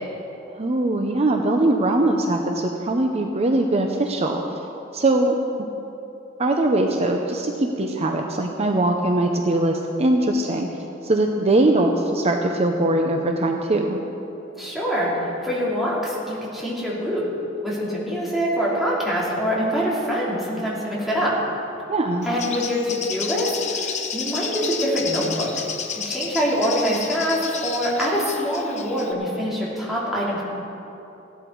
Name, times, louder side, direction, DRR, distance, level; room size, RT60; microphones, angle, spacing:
voice 1, 0.5-4.4 4.9-5.4 6.4-10.7 11.0-14.0 21.9-22.3, right 2 dB, 35° right, 3 dB, 0.7 m, -21 dB
voice 2, 14.6-15.1 15.4-17.2 17.6-21.3 22.2-25.5 26.0-30.4, equal, ahead, -7 dB, 3.1 m, -24 dB
Bird, 22.2-29.1, left 6 dB, 35° left, 0.9 m, -31 dB
16.0 x 11.5 x 4.7 m, 3.0 s
head